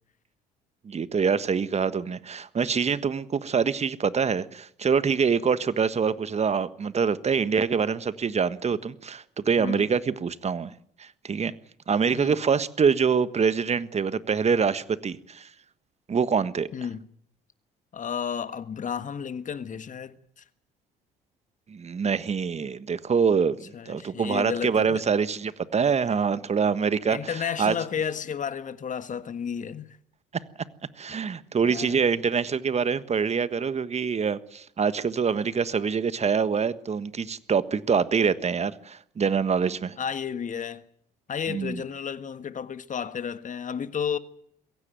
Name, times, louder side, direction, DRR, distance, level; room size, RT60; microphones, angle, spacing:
voice 1, 0.8-10.7 11.0-11.5 11.9-15.5 16.1-16.7 21.7-27.7 31.0-40.0 41.5-41.8, right 6 dB, 35° right, 1.4 m, -25 dB
voice 2, 16.7-17.1 17.9-20.4 23.7-25.1 27.1-30.0 31.6-32.0 40.0-40.8 41.3-44.2, left 7 dB, 40° left, 1.6 m, -32 dB
23.0 x 16.5 x 9.3 m
hypercardioid pair, 60°, 20 cm